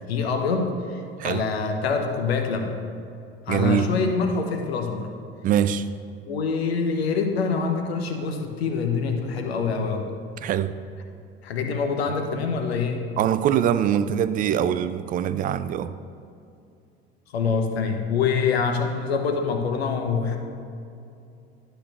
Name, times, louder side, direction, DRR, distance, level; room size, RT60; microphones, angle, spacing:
voice 1, 0.0-2.8 3.5-5.1 6.3-10.1 11.4-13.1 17.3-20.4, left 5 dB, 70° left, 4 dB, 0.9 m, -25 dB
voice 2, 3.5-3.9 5.4-5.9 10.4-10.7 13.2-15.9, right 10 dB, 25° right, 13 dB, 0.3 m, -23 dB
11.5 x 4.5 x 6.6 m, 2.5 s
figure-of-eight pair, 65°, 32 cm